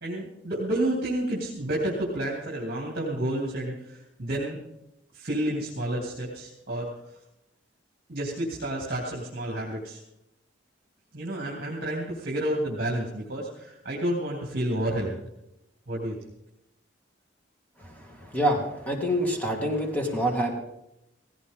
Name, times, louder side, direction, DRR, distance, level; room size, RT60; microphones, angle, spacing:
voice 1, 0.0-4.6 5.1-6.9 8.1-10.0 11.1-15.2 15.9-16.2, right 1 dB, 50° right, -3 dB, 2.9 m, -30 dB
voice 2, 18.3-20.5, equal, 10° left, 1 dB, 2.2 m, -26 dB
18.0 x 16.5 x 3.7 m, 0.86 s
head